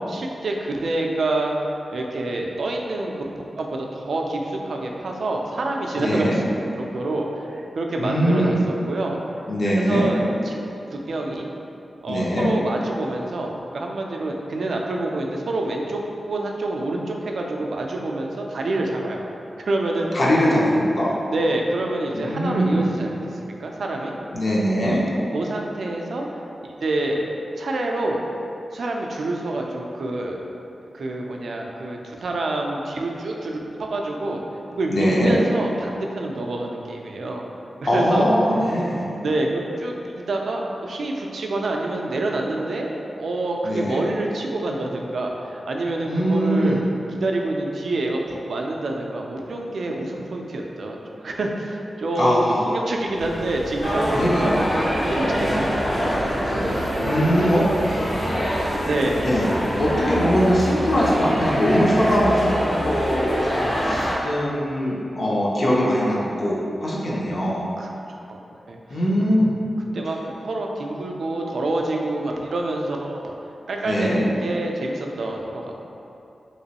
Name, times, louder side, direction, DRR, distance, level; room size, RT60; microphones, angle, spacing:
voice 1, 0.1-1.5 1.9-6.4 6.7-9.2 9.7-10.6 10.9-11.5 12.0-19.3 19.7-20.1 21.3-24.1 25.3-26.3 26.8-27.2 27.6-28.2 28.7-30.4 30.9-34.4 34.7-37.5 37.9-38.3 38.7-38.8 39.2-46.8 47.2-54.6 55.0-56.1 56.5-57.5 58.9-59.2 67.8-67.9 68.2-68.4 68.7-68.8 69.9-73.3 73.7-75.8, right 2 dB, 70° right, 1 dB, 0.3 m, -27 dB
voice 2, 6.0-6.4 8.0-8.6 9.5-10.1 12.1-12.5 20.1-21.1 22.1-22.9 24.3-25.0 34.9-35.4 37.8-39.1 43.6-44.1 46.1-46.8 52.2-52.7 54.1-54.6 57.0-57.6 59.2-59.5 59.8-67.6 68.9-69.5 73.8-74.2, equal, 45° left, -6 dB, 0.5 m, -21 dB
sound 1, 53.1-60.0, equal, 85° left, 1.3 m, -36 dB
sound 2, 53.8-64.1, equal, 65° left, 1.2 m, -24 dB
3.0 x 2.9 x 2.8 m, 2.7 s
wide cardioid pair, 175°, 0 cm